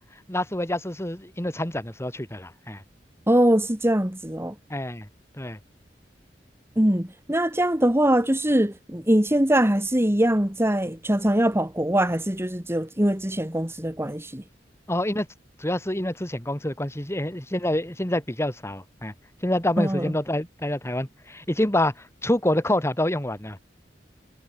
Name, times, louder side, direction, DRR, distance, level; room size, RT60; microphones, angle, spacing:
voice 1, 0.3-2.8 4.7-5.1 5.4-5.6 14.9-15.3 15.6-19.1 19.4-21.9 22.2-23.6, left 1 dB, 15° left, 3.3 m, -27 dB
voice 2, 3.3-4.5 6.8-14.4 19.8-20.0, right 1 dB, 15° right, 2.2 m, -22 dB
head